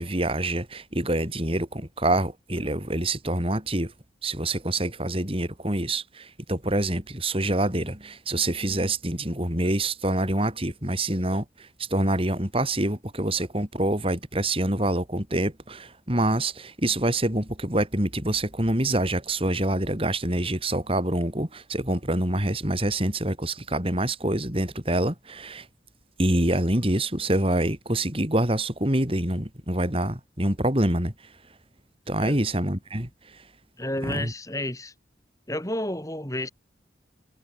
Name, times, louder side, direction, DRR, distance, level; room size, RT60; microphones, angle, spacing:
voice 1, 0.0-3.9 4.2-11.4 11.9-25.6 26.2-31.1 32.1-33.1 34.1-34.3, right 1 dB, 30° right, 3.8 m, -26 dB
voice 2, 33.8-34.9 35.5-36.5, left 1 dB, 20° left, 5.8 m, -31 dB
head